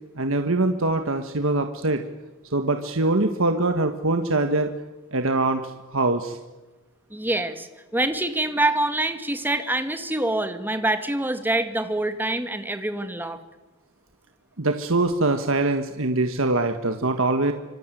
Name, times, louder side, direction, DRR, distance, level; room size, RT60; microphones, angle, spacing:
voice 1, 0.2-2.0 2.5-4.7 5.1-6.4 14.6-17.5, right 2 dB, 70° right, 7 dB, 1.6 m, -23 dB
voice 2, 7.1-13.4, right 1 dB, 10° right, 8 dB, 2.2 m, -25 dB
26.0 x 24.0 x 9.2 m, 1.2 s
head